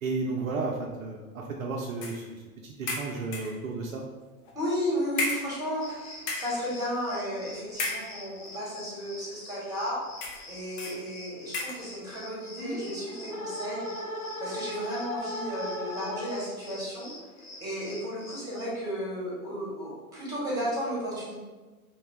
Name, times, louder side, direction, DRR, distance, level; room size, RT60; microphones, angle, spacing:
voice 1, 0.0-4.0, right 3 dB, 65° right, 0 dB, 0.5 m, -33 dB
sound 1, 2.0-2.3 2.9-3.6 4.4-4.6 5.2-5.9 6.2-6.6 7.7-8.5 9.2-9.3 10.2-10.5 10.8-11.0 11.5-11.9, left 2 dB, 40° left, 0.6 m, -34 dB
voice 2, 4.5-10.0 10.5-13.9 14.4-17.1 17.6-21.4, equal, 10° right, -6 dB, 1.1 m, -33 dB
sound 2, 5.8-18.6, left 2 dB, 85° left, 0.8 m, -47 dB
sound 3, 12.5-16.7, equal, 70° left, 1.5 m, -37 dB
2.9 x 2.2 x 2.9 m, 1.3 s
figure-of-eight pair, 95°, 43 cm